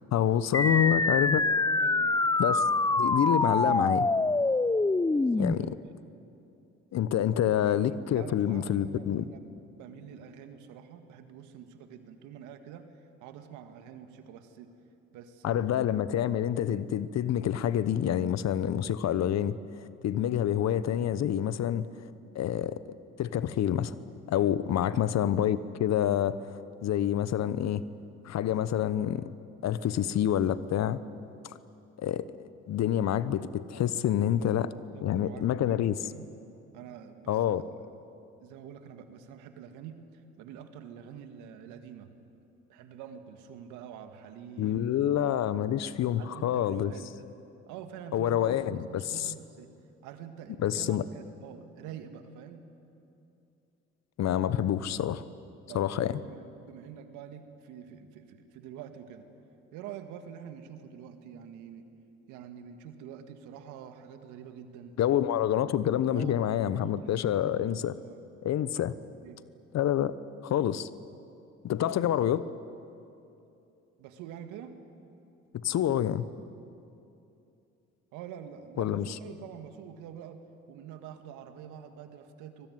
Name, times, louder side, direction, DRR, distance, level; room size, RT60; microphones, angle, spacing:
voice 1, 0.1-1.4 2.4-2.6 3.0-4.1 5.4-5.7 6.9-9.3 15.4-21.9 22.3-23.9 24.3-26.4 26.8-27.8 28.2-29.3 29.6-31.0 32.0-32.2 32.7-34.7 35.0-36.0 37.3-37.6 44.6-46.9 48.1-49.3 50.6-51.0 54.2-55.2 55.7-56.2 65.0-67.9 68.4-69.0 69.7-70.1 70.4-70.9 71.6-72.4 75.5-76.3 78.8-79.2, left 10 dB, 60° left, 15 dB, 1.1 m, -27 dB
sound 1, 0.5-5.5, left 3 dB, 10° left, 0.7 m, -25 dB
voice 2, 0.6-1.2 1.8-2.2 5.1-5.8 7.4-7.6 8.1-14.7 15.1-15.7 24.8-25.1 34.4-36.3 36.7-37.7 38.4-42.2 42.7-45.0 45.4-45.9 46.2-47.2 47.7-49.7 50.0-52.7 55.7-59.3 59.7-61.9 62.3-65.0 66.1-68.2 69.2-69.5 74.0-74.8 78.1-80.4 80.7-82.7, right 8 dB, 80° right, 7 dB, 2.0 m, -46 dB
24.0 x 20.5 x 9.4 m, 2.7 s
hypercardioid pair, 60°, 30 cm